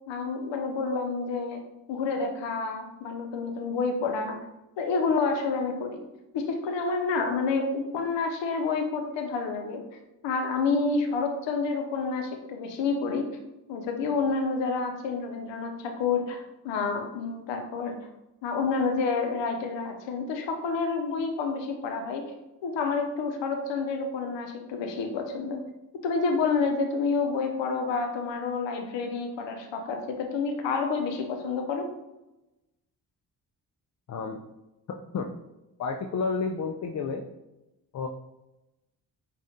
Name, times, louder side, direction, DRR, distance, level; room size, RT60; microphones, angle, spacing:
voice 1, 0.1-1.6 1.9-4.4 4.8-6.0 6.3-9.8 10.2-13.3 13.7-18.0 18.4-22.3 22.6-25.6 26.0-31.9, left 4 dB, 80° left, 4 dB, 0.7 m, -29 dB
voice 2, 34.1-34.4 35.1-35.3 35.8-37.2 37.9-38.1, left 4 dB, 40° left, 3 dB, 0.4 m, -30 dB
4.9 x 2.4 x 2.7 m, 0.97 s
supercardioid pair, 50°, 43 cm